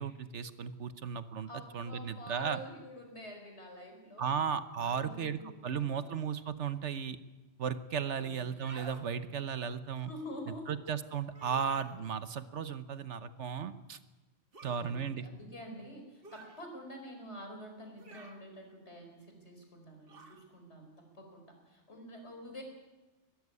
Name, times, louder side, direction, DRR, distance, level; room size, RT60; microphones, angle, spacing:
voice 1, 0.0-1.5 1.7-2.6 4.2-7.2 7.6-10.1 10.7-14.0 14.6-15.3, right 7 dB, 70° right, 12 dB, 1.2 m, -35 dB
voice 2, 1.5-4.4 4.8-5.9 8.1-8.6 10.0-10.8 11.4-11.5 14.7-22.6, equal, 60° left, 3 dB, 5.0 m, -48 dB
sound 1, 8.4-9.1 11.3-12.0 14.5-14.8 16.2-16.6 18.0-18.4 20.1-20.4, right 3 dB, 50° right, 1.9 m, -51 dB
22.5 x 13.5 x 9.7 m, 1.1 s
omnidirectional pair, 1.3 m